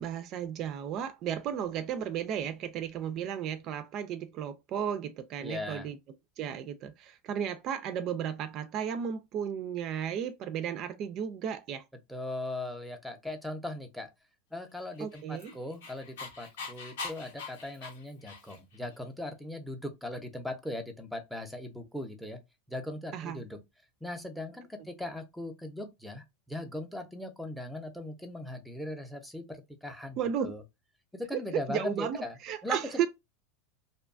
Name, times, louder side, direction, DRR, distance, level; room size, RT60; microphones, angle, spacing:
voice 1, 0.0-6.0 6.4-11.8 15.0-15.5 23.1-23.5 30.2-30.5 31.3-31.4 31.7-33.1, right 8 dB, 45° right, 0.3 m, -34 dB
voice 2, 5.4-5.9 12.1-14.1 14.5-22.4 22.7-23.6 24.0-30.6 31.1-32.4 32.6-32.8, left 1 dB, ahead, 0.6 m, -39 dB
Dog, 14.9-18.8, left 4 dB, 85° left, 0.9 m, -42 dB
2.6 x 2.2 x 2.5 m
supercardioid pair, 120°, 0 cm